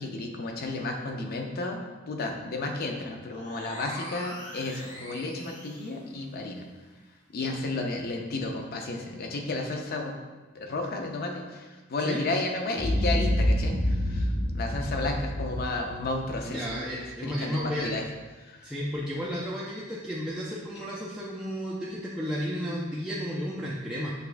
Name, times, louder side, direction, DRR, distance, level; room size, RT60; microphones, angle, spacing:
voice 1, 0.0-6.7 7.3-10.1 10.5-16.7 17.2-18.0 18.4-18.7, left 2 dB, 50° left, 3 dB, 0.5 m, -32 dB
sound 1, 3.3-6.0, equal, 30° left, 1.4 m, -42 dB
Boom, 12.8-17.0, left 1 dB, 75° left, 1.4 m, -28 dB
voice 2, 16.4-17.9 18.6-24.1, equal, 5° right, -7 dB, 0.4 m, -33 dB
6.5 x 2.2 x 2.5 m, 1.2 s
head